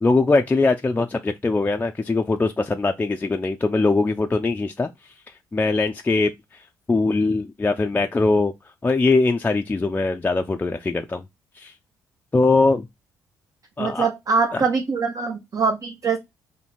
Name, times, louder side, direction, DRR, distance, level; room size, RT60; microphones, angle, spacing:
voice 1, 0.0-4.9 5.5-6.6 6.9-8.5 8.8-11.2 11.6-11.7 12.3-12.9 13.8-14.1 14.5-14.6, left 3 dB, 20° left, 0.4 m, -21 dB
voice 2, 13.8-16.2, right 5 dB, 40° right, 0.7 m, -23 dB
2.8 x 2.7 x 4.3 m
hypercardioid pair, 45°, 9 cm